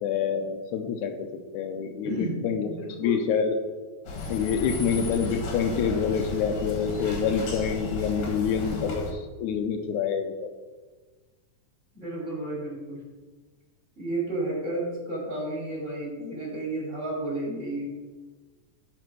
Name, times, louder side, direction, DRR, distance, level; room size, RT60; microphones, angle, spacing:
voice 1, 0.0-1.3 1.5-3.6 4.3-10.5, left 7 dB, 80° left, 6 dB, 2.0 m, -27 dB
voice 2, 2.0-3.2 11.9-13.0 14.0-17.9, right 1 dB, 25° right, -5 dB, 2.6 m, -32 dB
sound 1, 4.1-9.1, left 2 dB, 65° left, 2.6 m, -34 dB
12.0 x 5.0 x 4.7 m, 1.3 s
omnidirectional pair, 3.6 m